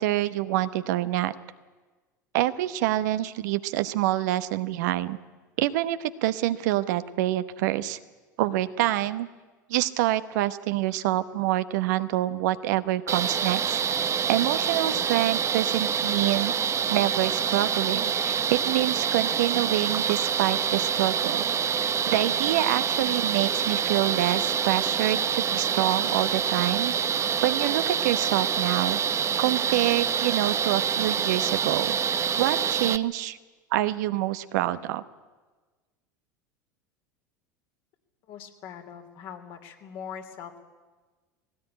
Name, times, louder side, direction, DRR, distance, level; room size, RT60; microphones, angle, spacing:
voice 1, 0.0-1.3 2.3-5.2 5.6-8.0 8.4-9.3 9.7-13.8 14.3-16.5 16.9-21.4 21.8-26.9 27.4-29.0 29.4-32.0 32.4-33.4 33.7-35.0, right 15 dB, 65° right, 11 dB, 1.0 m, -26 dB
sound 1, 13.1-33.0, right 7 dB, 30° right, 0.9 m, -26 dB
voice 2, 38.3-40.6, left 8 dB, 55° left, 4 dB, 3.1 m, -41 dB
19.5 x 18.0 x 10.0 m, 1.3 s
hypercardioid pair, 80°, 10 cm